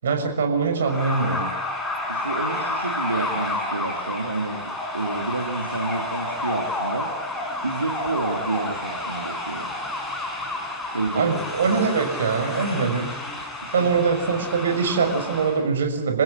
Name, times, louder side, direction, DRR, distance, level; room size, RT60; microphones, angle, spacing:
voice 1, 0.0-1.5 11.1-13.2 13.7-16.2, right 5 dB, 65° right, 5 dB, 6.3 m, -23 dB
sound 1, 0.8-15.6, left 2 dB, 10° left, 6.6 m, -30 dB
voice 2, 2.1-7.1 7.6-9.8 10.9-11.3 13.6-13.9, right 3 dB, 85° right, 2 dB, 2.8 m, -29 dB
28.5 x 15.5 x 9.8 m, 0.93 s
figure-of-eight pair, 105°, 0 cm